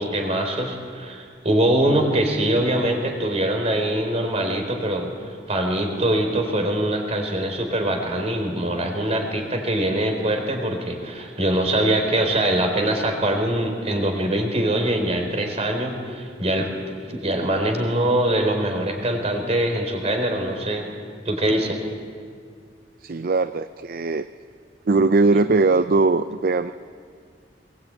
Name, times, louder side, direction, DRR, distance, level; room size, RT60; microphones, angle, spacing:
voice 1, 0.0-5.1 5.5-16.7 17.1-20.9 21.3-21.8, right 1 dB, 40° right, 5 dB, 3.7 m, -23 dB
voice 2, 23.0-24.3 24.9-26.7, right 3 dB, 55° right, 12 dB, 0.5 m, -20 dB
21.0 x 20.0 x 8.9 m, 2.1 s
head